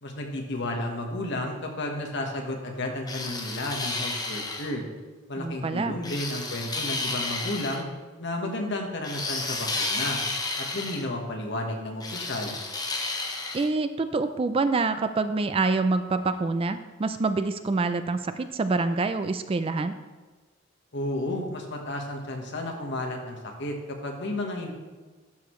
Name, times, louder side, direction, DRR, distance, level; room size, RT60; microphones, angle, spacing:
voice 1, 0.0-4.8 5.3-7.8 8.2-10.2 10.6-12.6 20.9-24.7, left 1 dB, 60° left, 2 dB, 1.3 m, -32 dB
sound 1, 3.1-4.7 6.0-7.8 9.0-11.1 12.0-13.7, left 3 dB, 20° left, 0.8 m, -32 dB
voice 2, 5.4-6.0 13.5-19.9, right 3 dB, 30° right, 10 dB, 0.3 m, -26 dB
11.5 x 6.5 x 3.1 m, 1.3 s
head